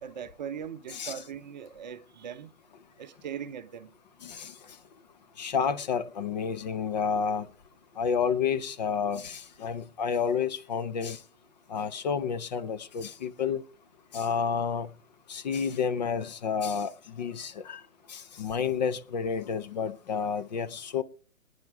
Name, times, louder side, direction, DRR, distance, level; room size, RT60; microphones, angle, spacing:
voice 1, 0.0-2.5 3.0-3.9, right 8 dB, 35° right, 0.8 m, -40 dB
voice 2, 4.2-4.5 5.4-7.5 8.0-11.2 11.7-13.6 14.1-14.9 15.3-17.8 18.1-21.0, left 6 dB, 30° left, 0.7 m, -30 dB
23.0 x 9.6 x 3.4 m
figure-of-eight pair, 140°, 40 cm